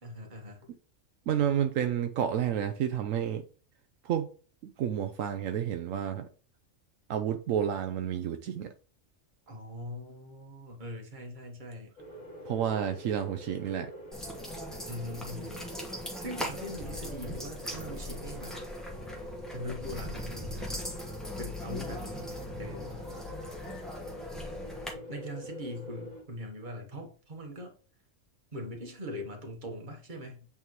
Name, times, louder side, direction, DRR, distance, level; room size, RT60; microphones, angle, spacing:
voice 1, 0.0-0.7 9.5-11.9 14.9-15.7 16.2-18.6 19.5-20.8 21.4-23.0 24.9-27.7 28.5-30.5, equal, 40° right, 1.4 m, -41 dB
voice 2, 1.3-3.4 4.0-4.3 4.8-6.3 7.1-8.7 12.4-13.9, right 9 dB, 80° right, 1.0 m, -30 dB
sound 1, 12.0-26.2, left 1 dB, 35° left, 1.7 m, -45 dB
sound 2, 14.1-24.9, equal, ahead, 1.1 m, -40 dB
8.3 x 3.6 x 3.1 m
omnidirectional pair, 1.4 m